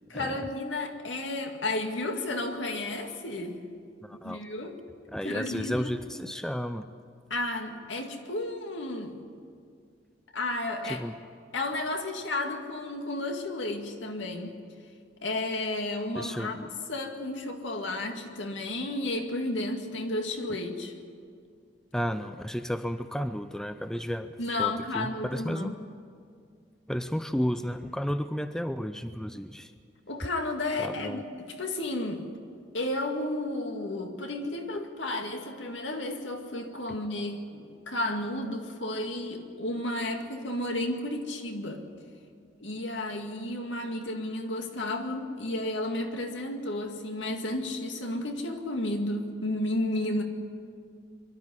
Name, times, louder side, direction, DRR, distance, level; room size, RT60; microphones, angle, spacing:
voice 1, 0.1-3.6 4.1-4.8 5.2-6.0 7.3-9.2 10.3-11.0 11.5-14.5 15.2-16.5 16.9-20.9 24.4-25.7 30.1-32.3 32.7-41.8 42.6-50.2, left 2 dB, 75° left, 4 dB, 2.1 m, -32 dB
voice 2, 4.0-4.4 5.1-6.8 10.8-11.2 16.2-16.7 21.9-25.8 26.9-29.7 30.8-31.2, equal, 5° left, 10 dB, 0.4 m, -33 dB
23.5 x 12.5 x 9.5 m, 2.2 s
head